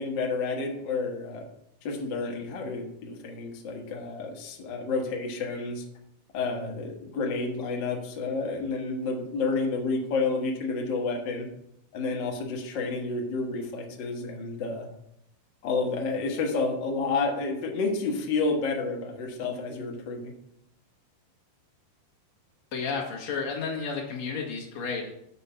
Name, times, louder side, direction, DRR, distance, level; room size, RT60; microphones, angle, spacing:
voice 1, 0.0-1.5 1.8-5.8 6.3-11.5 11.9-14.9 15.6-20.3, left 3 dB, 85° left, 0 dB, 1.0 m, -30 dB
voice 2, 22.7-25.1, left 5 dB, 55° left, 0 dB, 2.4 m, -32 dB
7.0 x 6.3 x 7.0 m, 0.78 s
omnidirectional pair, 4.4 m